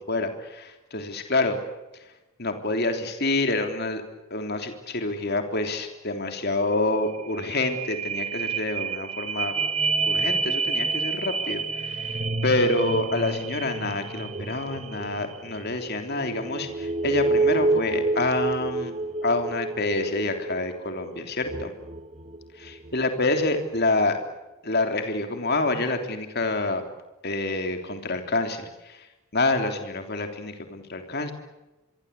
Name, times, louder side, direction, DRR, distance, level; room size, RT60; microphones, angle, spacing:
voice 1, 0.0-1.6 2.4-4.0 4.3-9.5 10.0-18.9 19.2-21.7 22.6-24.2 24.6-26.8 27.2-29.1 29.3-31.3, left 2 dB, 45° left, 6 dB, 3.3 m, -27 dB
sound 1, 6.7-6.8 7.1-23.0 23.5-23.6, right 3 dB, 30° right, 1.1 m, -29 dB
25.5 x 24.0 x 8.3 m, 1.0 s
head